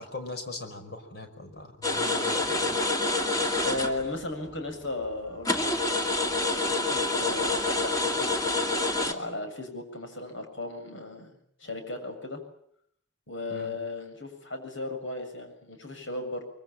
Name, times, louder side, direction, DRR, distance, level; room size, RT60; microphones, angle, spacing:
voice 1, 0.0-2.8 13.5-13.8, left 2 dB, 55° left, 6 dB, 5.4 m, -41 dB
sound 1, 1.8-4.2 4.5-4.6 5.1-5.2 5.4-9.1, left 2 dB, 20° left, 2.4 m, -27 dB
voice 2, 3.6-5.6 6.5-8.3 9.0-11.3 11.6-12.4 13.3-16.4, left 2 dB, 80° left, 5 dB, 7.3 m, -35 dB
25.0 x 24.0 x 8.9 m, 0.69 s
head